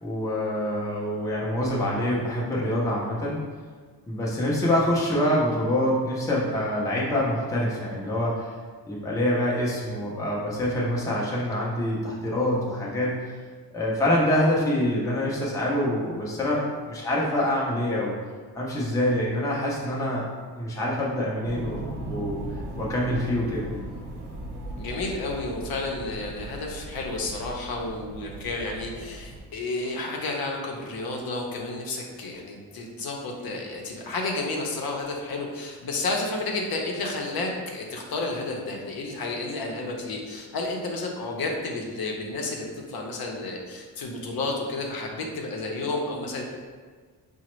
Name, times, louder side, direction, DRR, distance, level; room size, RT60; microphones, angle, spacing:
voice 1, 0.0-3.4 4.1-8.5 8.9-13.2 13.7-18.1 18.5-20.3 20.5-21.8 22.1-22.4 22.8-23.7, left 1 dB, 10° left, -5 dB, 0.4 m, -25 dB
sound 1, 21.4-29.4, right 1 dB, 80° right, 0.8 m, -38 dB
voice 2, 24.8-46.4, left 2 dB, 65° left, 0 dB, 0.6 m, -31 dB
4.9 x 2.1 x 3.0 m, 1.5 s
wide cardioid pair, 175°, 39 cm